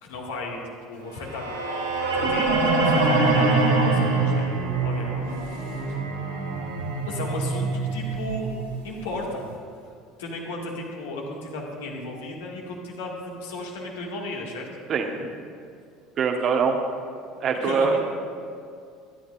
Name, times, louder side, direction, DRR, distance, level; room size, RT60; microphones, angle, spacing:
voice 1, 0.0-1.5 2.1-4.5 4.8-6.0 7.0-8.5 8.8-9.4 10.2-14.7 17.6-18.0, left 2 dB, 65° left, -2 dB, 2.1 m, -35 dB
sound 1, 1.2-9.3, right 3 dB, 80° right, 1.9 m, -24 dB
voice 2, 14.9-15.3 16.2-16.8 17.4-18.0, right 5 dB, 40° right, 4 dB, 1.2 m, -23 dB
23.5 x 11.5 x 2.6 m, 2.3 s
figure-of-eight pair, 65°, 0 cm